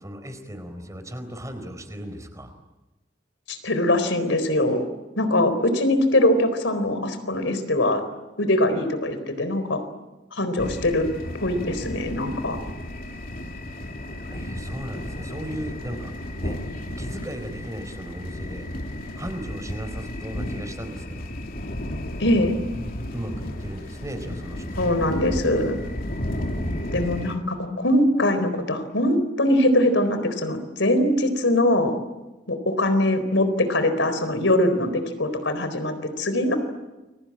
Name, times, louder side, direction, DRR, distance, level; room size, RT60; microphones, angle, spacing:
voice 1, 0.0-2.5 14.3-16.1 16.4-16.6 17.0-18.7 19.2-21.3 23.1-24.8, equal, 20° right, 8 dB, 4.4 m, -36 dB
voice 2, 3.5-4.8 5.2-8.0 8.4-9.8 10.3-11.1 11.4-12.6 22.2-22.5 24.8-25.8 26.9-31.9 32.5-36.6, left 1 dB, 80° left, 10 dB, 4.1 m, -22 dB
sound 1, 10.6-27.4, left 1 dB, 50° left, 3.0 m, -33 dB
29.5 x 22.5 x 8.8 m, 1.1 s
head